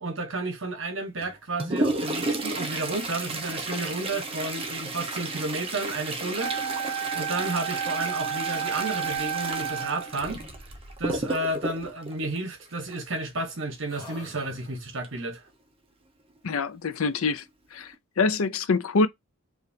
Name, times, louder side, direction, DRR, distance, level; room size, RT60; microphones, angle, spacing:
voice 1, 0.0-10.4 11.0-15.4, right 2 dB, 55° right, 1.2 m, -32 dB
Toilet flush, 1.2-13.2 15.0-15.1 15.5-15.6 16.4-16.5 17.1-17.4 17.8-17.9, right 2 dB, 25° right, 0.7 m, -32 dB
Wind instrument woodwind instrument, 6.4-10.2, right 8 dB, 90° right, 0.7 m, -31 dB
sound 1, 10.1-11.3 12.7-13.5 13.9-15.1, left 1 dB, 15° left, 1.7 m, -48 dB
voice 2, 16.4-17.4 17.7-19.1, left 4 dB, 70° left, 0.5 m, -25 dB
4.9 x 2.6 x 2.7 m
head